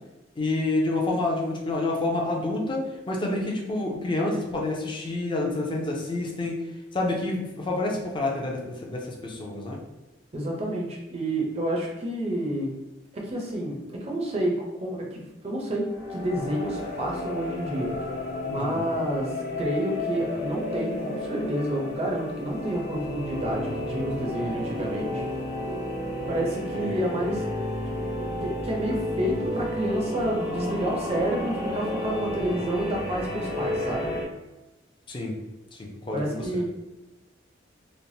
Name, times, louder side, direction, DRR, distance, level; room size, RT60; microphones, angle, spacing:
voice 1, 0.4-6.6 6.9-9.8 18.5-18.8 26.7-27.0 35.1-35.4 35.7-36.6, left 2 dB, 25° left, -1 dB, 0.5 m, -28 dB
voice 2, 10.3-12.7 13.2-14.5 14.8-18.1 18.5-25.2 26.3-27.4 28.4-34.1 36.1-36.6, right 1 dB, 35° right, -2 dB, 0.5 m, -29 dB
sound 1, 15.8-34.2, left 1 dB, 60° left, 1.0 m, -32 dB
3.1 x 2.1 x 2.6 m, 1.0 s
head